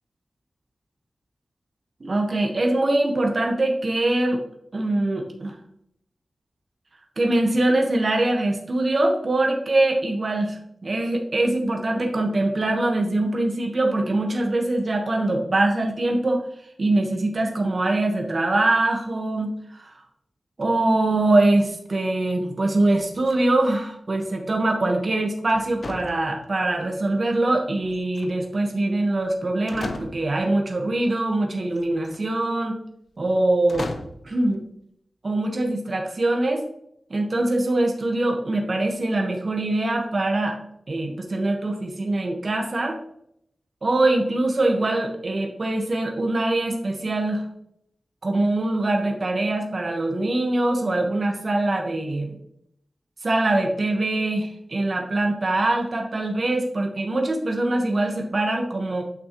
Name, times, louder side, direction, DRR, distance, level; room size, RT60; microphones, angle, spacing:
voice 1, 2.0-4.4 4.7-5.5 7.2-16.4 16.8-19.9 20.6-32.8 33.2-33.9 34.2-34.6 35.2-36.6 37.1-40.6 40.9-43.0 43.8-47.4 48.2-52.3 53.2-59.0, right 2 dB, 50° right, 2 dB, 1.3 m, -23 dB
sound 1, 22.9-23.7 25.5-26.8 27.8-28.6 29.3-29.4 29.7-30.5 31.7-32.2 33.7-34.3, left 2 dB, 65° left, 0.7 m, -37 dB
8.8 x 6.2 x 3.0 m, 0.72 s
wide cardioid pair, 85°, 0 cm